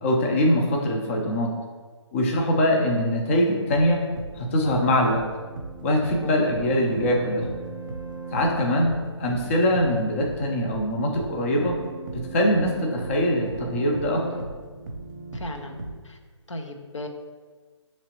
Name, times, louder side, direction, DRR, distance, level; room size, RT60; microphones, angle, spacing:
voice 1, 0.0-1.5 2.1-4.0 4.4-5.2 5.8-7.5 8.3-8.9 9.2-11.8 12.1-14.3, left 1 dB, 25° left, 0 dB, 0.5 m, -23 dB
sound 1, 3.6-16.0, right 3 dB, 40° right, 0.7 m, -37 dB
voice 2, 6.0-6.4 15.3-15.8 16.0-16.2 16.5-17.1, left 1 dB, 80° left, 4 dB, 0.7 m, -37 dB
5.9 x 3.0 x 2.9 m, 1.4 s
figure-of-eight pair, 150°, 16 cm